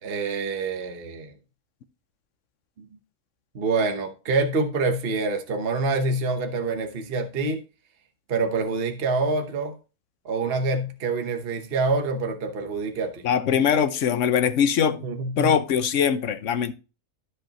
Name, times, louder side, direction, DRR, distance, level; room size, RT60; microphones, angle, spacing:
voice 1, 0.0-1.3 2.8-2.9 3.5-7.6 8.3-9.7 10.2-13.3 15.0-15.5, right 3 dB, 45° right, 1.2 m, -26 dB
voice 2, 13.2-15.0 15.4-16.7, left 7 dB, 60° left, 1.0 m, -22 dB
13.5 x 5.2 x 2.9 m
omnidirectional pair, 1.6 m